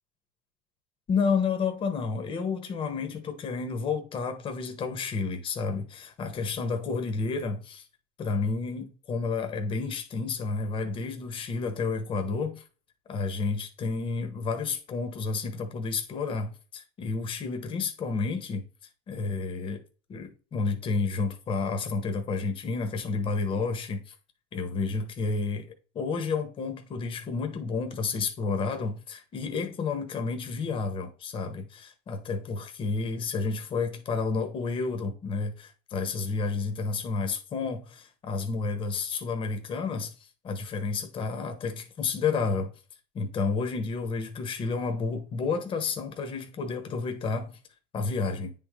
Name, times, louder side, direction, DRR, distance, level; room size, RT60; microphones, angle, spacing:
voice 1, 1.1-7.9 8.2-12.6 13.1-18.6 19.1-19.8 20.1-24.1 24.5-40.1 40.4-42.7 43.1-47.5 47.9-48.5, left 4 dB, 35° left, 1.2 m, -30 dB
9.5 x 3.8 x 3.1 m
supercardioid pair, 115°, 15 cm